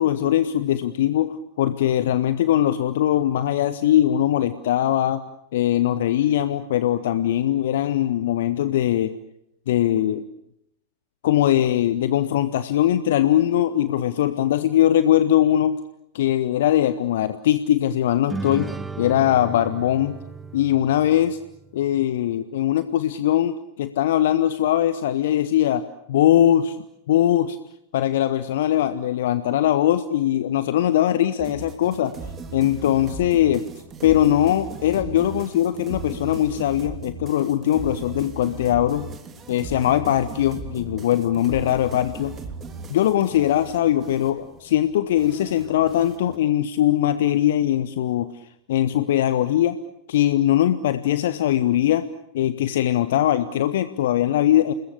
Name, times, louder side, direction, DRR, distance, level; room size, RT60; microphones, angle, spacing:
voice 1, 0.0-5.2 5.5-9.1 9.7-10.2 11.2-15.8 16.1-18.7 19.0-20.2 20.5-21.4 21.7-26.8 27.1-27.6 27.9-32.1 32.5-33.6 34.0-39.1 39.5-42.3 42.9-48.3 48.7-49.8 50.1-52.0 52.3-54.7, left 12 dB, 55° left, 13 dB, 1.0 m, -21 dB
sound 1, 18.3-21.9, right 3 dB, 10° right, 1.1 m, -35 dB
sound 2, 31.4-46.4, right 4 dB, 25° right, 3.1 m, -38 dB
29.0 x 21.0 x 8.6 m, 0.81 s
figure-of-eight pair, 90°, 0 cm